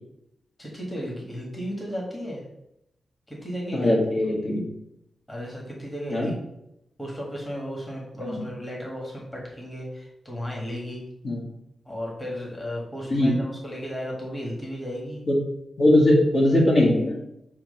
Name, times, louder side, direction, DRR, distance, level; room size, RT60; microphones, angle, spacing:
voice 1, 0.6-2.4 3.3-4.0 5.3-6.5 7.0-11.0 11.8-15.3, equal, 10° left, -3 dB, 1.6 m, -34 dB
voice 2, 3.7-4.6 6.1-6.3 8.2-8.4 11.2-11.4 13.1-13.3 15.3-15.4 15.8-17.2, left 1 dB, 40° left, -3 dB, 1.7 m, -20 dB
7.1 x 3.0 x 5.5 m, 0.81 s
wide cardioid pair, 160°, 0 cm